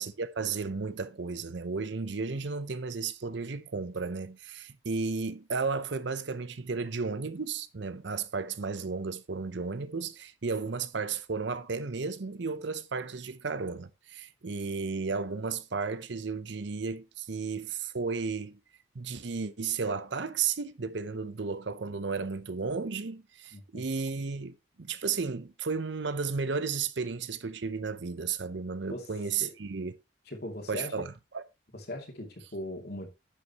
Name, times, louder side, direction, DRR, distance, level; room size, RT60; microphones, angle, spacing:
voice 1, 0.0-18.6 18.9-29.9 30.7-31.4, right 4 dB, 65° right, 0.7 m, -33 dB
voice 2, 23.5-23.9 28.9-29.1 29.4-29.5 30.3-30.9 31.7-33.1, left 1 dB, 50° left, 2.6 m, -39 dB
10.0 x 8.0 x 3.0 m
head